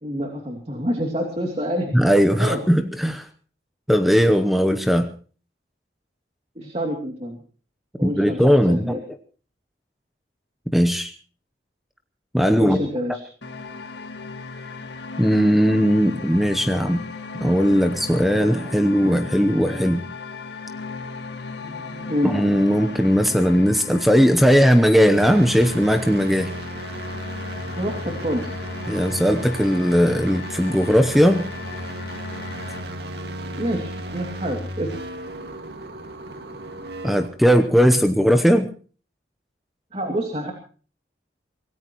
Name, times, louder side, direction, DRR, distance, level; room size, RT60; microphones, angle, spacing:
voice 1, 0.0-1.9 2.3-2.6 6.5-7.4 8.0-9.0 12.5-13.2 18.7-18.8 21.6-23.5 27.8-28.6 32.8-34.9 39.9-40.5, equal, 35° right, 3 dB, 2.8 m, -28 dB
voice 2, 1.9-3.3 3.9-5.1 8.0-9.0 10.7-11.1 12.3-12.8 15.2-17.0 17.4-20.0 22.2-26.5 28.9-31.5 37.0-38.7, equal, ahead, 8 dB, 0.9 m, -18 dB
sound 1, 13.4-32.8, left 4 dB, 75° left, 2.1 m, -36 dB
sound 2, 25.1-37.3, right 1 dB, 65° right, 2.2 m, -34 dB
25.0 x 18.5 x 3.1 m, 0.40 s
head